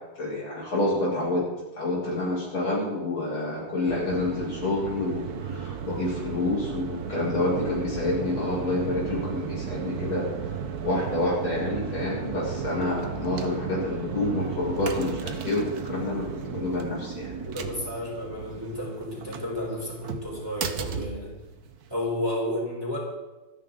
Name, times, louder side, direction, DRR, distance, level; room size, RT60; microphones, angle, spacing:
voice 1, 0.2-1.4 1.8-10.3 10.8-17.3, left 2 dB, 70° left, -5 dB, 7.3 m, -28 dB
sound 1, 3.9-21.9, right 7 dB, 55° right, 1.3 m, -35 dB
voice 2, 17.4-21.4 21.9-23.0, left 1 dB, 10° right, -3 dB, 3.7 m, -32 dB
25.5 x 10.5 x 3.9 m, 1.1 s
omnidirectional pair, 2.4 m